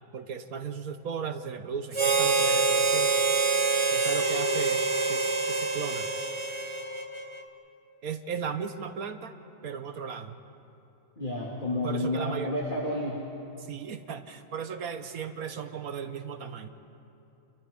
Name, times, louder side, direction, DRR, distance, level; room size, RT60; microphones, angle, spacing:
voice 1, 0.1-3.2 3.9-6.1 8.0-9.3 9.6-10.4 11.8-12.5 13.6-16.7, right 6 dB, 55° right, 8 dB, 1.2 m, -36 dB
Harmonica, 1.9-7.4, right 4 dB, 35° right, 0.4 m, -26 dB
voice 2, 11.2-13.3, left 1 dB, 25° left, -3 dB, 2.1 m, -30 dB
29.5 x 29.0 x 3.6 m, 2.8 s
omnidirectional pair, 2.1 m